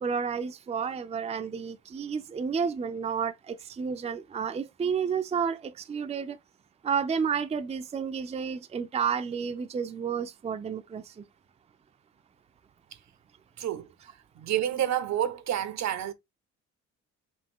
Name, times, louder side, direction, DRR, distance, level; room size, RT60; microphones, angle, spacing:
voice 1, 0.0-6.4 6.8-11.3, right 6 dB, 20° right, 0.4 m, -31 dB
voice 2, 13.6-13.9 14.4-16.1, right 11 dB, 65° right, 0.7 m, -29 dB
5.3 x 2.7 x 3.7 m
cardioid pair, 90°, 30 cm